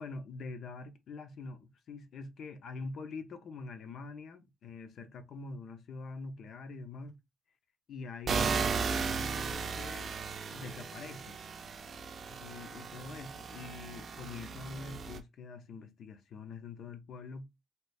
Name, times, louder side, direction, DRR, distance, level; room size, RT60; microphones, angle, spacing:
voice 1, 0.0-7.2 7.9-10.1 10.5-11.4 12.4-17.5, left 3 dB, 65° left, 0.7 m, -45 dB
sound 1, 8.3-15.2, right 5 dB, 50° right, 0.5 m, -36 dB
2.9 x 2.4 x 3.3 m
cardioid pair, 90°, 0 cm